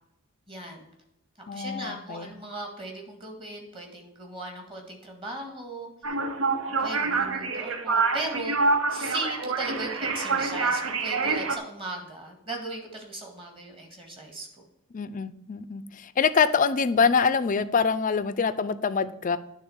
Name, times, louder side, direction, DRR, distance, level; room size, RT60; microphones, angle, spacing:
voice 1, 0.5-0.9 1.5-5.9 6.8-14.7, right 2 dB, 25° right, 2 dB, 1.8 m, -38 dB
voice 2, 1.5-2.3 14.9-19.4, left 5 dB, 35° left, 13 dB, 0.4 m, -25 dB
sound 1, 6.0-11.6, right 4 dB, 65° right, 0.8 m, -26 dB
9.5 x 3.7 x 7.0 m, 0.88 s
head